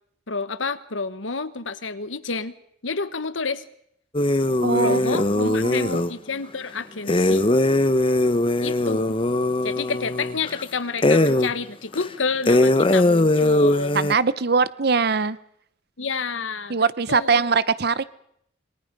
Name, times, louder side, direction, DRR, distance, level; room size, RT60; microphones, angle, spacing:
voice 1, 0.3-2.5 2.8-3.6 4.8-7.5 8.6-9.2 9.6-14.0 16.0-17.5, left 4 dB, 85° left, 12 dB, 1.3 m, -29 dB
sound 1, 4.1-6.1 7.1-10.6 11.0-11.5 11.9-12.0 12.5-14.1, left 2 dB, 25° left, 0.8 m, -20 dB
voice 2, 4.6-6.0 13.9-15.4 16.7-18.0, right 5 dB, 55° right, 16 dB, 0.8 m, -22 dB
26.5 x 23.0 x 5.3 m, 0.72 s
head